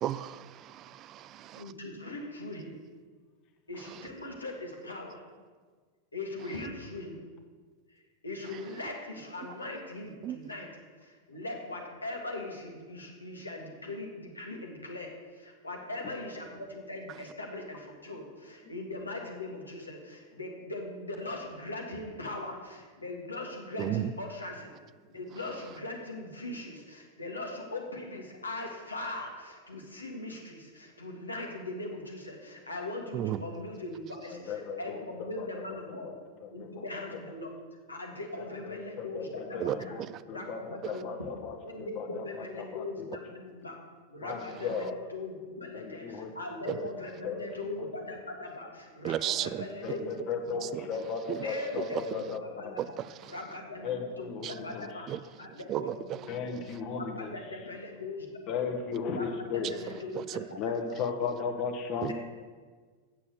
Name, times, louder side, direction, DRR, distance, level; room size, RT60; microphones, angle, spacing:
voice 1, 0.0-1.7 3.8-4.1 10.2-10.4 23.8-24.1 33.1-33.4 39.6-40.1 46.7-46.8 49.0-49.7 50.6-50.9 51.3-51.5 51.9-52.0 52.8-53.4 54.4-54.5 55.1-55.2 55.7-56.2 56.7-56.8 60.1-60.5 62.0-62.1, right 12 dB, 35° right, 0.4 m, -34 dB
voice 2, 1.5-2.8 3.7-5.2 6.1-7.3 7.9-10.7 11.0-24.7 25.1-36.1 36.5-37.5 37.9-39.9 40.2-41.3 41.6-43.7 44.1-51.0 51.4-52.8 53.3-54.3 54.6-55.1 55.4-56.6 56.9-58.3 59.1-60.3 60.5-60.6 62.1-62.2, left 2 dB, 80° left, 1.6 m, -40 dB
voice 3, 34.3-35.0 35.4-35.6 36.6-36.8 38.4-40.0 40.3-42.8 44.2-44.9 45.7-46.3 46.6-46.9 47.2-47.5 47.8-47.9 49.8-52.8 53.8-54.9 56.3-57.3 58.5-59.7 60.6-62.1, left 5 dB, 40° left, 1.3 m, -35 dB
8.7 x 7.0 x 6.5 m
figure-of-eight pair, 90°, 0 cm